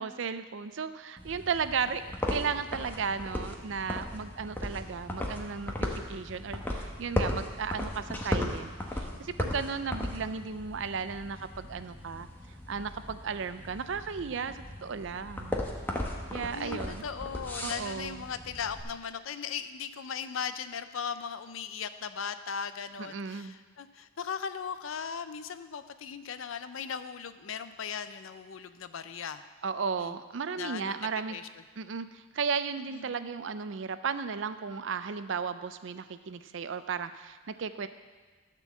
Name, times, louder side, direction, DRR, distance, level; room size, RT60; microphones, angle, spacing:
voice 1, 0.0-12.3 12.7-15.6 16.3-17.0 17.6-18.2 23.0-23.6 29.6-31.4 31.8-37.9, right 5 dB, 70° right, 12 dB, 0.5 m, -35 dB
sound 1, 1.2-18.8, left 1 dB, 10° left, 1.0 m, -37 dB
voice 2, 16.5-29.4 30.0-30.2 30.5-30.9 31.3-31.5 32.9-33.1, left 7 dB, 90° left, 11 dB, 0.5 m, -38 dB
12.5 x 4.5 x 7.1 m, 1.4 s
head